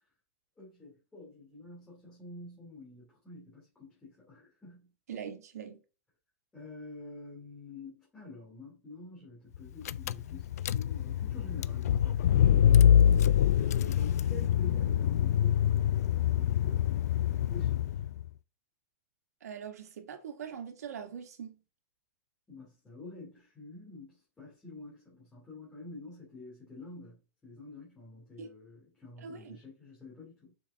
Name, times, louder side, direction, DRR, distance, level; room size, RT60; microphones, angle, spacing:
voice 1, 0.6-4.9 6.5-13.1 13.5-16.9 17.2-18.0 22.5-30.5, left 2 dB, 10° left, 2.7 m, -48 dB
voice 2, 5.1-5.8 19.4-21.6 28.4-28.5 29.2-29.6, right 7 dB, 85° right, 1.7 m, -42 dB
Car / Engine, 9.5-9.6 9.8-18.2, left 9 dB, 80° left, 0.4 m, -25 dB
6.8 x 5.4 x 3.6 m
supercardioid pair, 155°, 8 cm